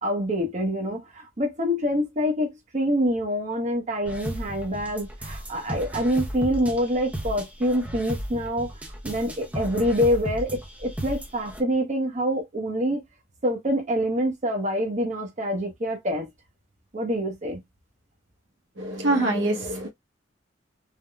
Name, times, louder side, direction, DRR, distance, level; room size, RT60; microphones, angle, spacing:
voice 1, 0.0-8.7 9.0-13.0 13.4-16.3 16.9-17.6, equal, 40° right, 0.8 m, -26 dB
sound 1, 4.1-11.6, right 1 dB, 5° right, 0.5 m, -35 dB
voice 2, 18.8-19.9, right 2 dB, 70° right, 0.9 m, -24 dB
3.4 x 2.1 x 2.3 m
head